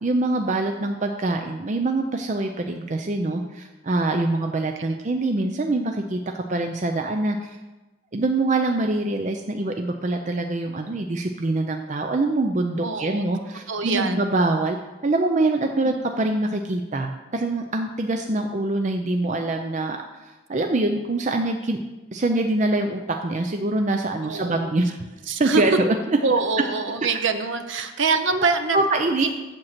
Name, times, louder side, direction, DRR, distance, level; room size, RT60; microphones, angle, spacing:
voice 1, 0.0-7.6 8.1-14.8 15.0-20.0 20.2-21.8 22.1-25.1 25.4-25.9 28.3-29.3, right 2 dB, 35° right, 4 dB, 0.5 m, -24 dB
voice 2, 12.8-13.2 13.7-14.3 15.8-15.9 18.3-18.5 24.2-24.7 25.3-25.6 26.2-28.9 29.2-29.3, right 4 dB, 70° right, 8 dB, 0.8 m, -25 dB
7.8 x 7.5 x 5.8 m, 1.1 s
head